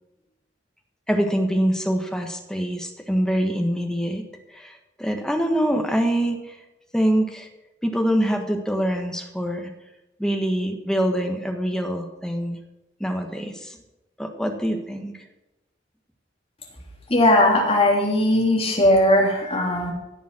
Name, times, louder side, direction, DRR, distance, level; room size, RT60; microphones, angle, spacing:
voice 1, 1.1-4.2 4.5-4.7 5.0-6.5 6.9-7.5 7.8-9.7 10.2-12.6 13.0-13.8 14.2-15.1, equal, 5° left, 3 dB, 1.4 m, -24 dB
voice 2, 17.1-19.9, left 1 dB, 30° left, -1 dB, 3.2 m, -18 dB
16.5 x 7.2 x 6.0 m, 0.98 s
head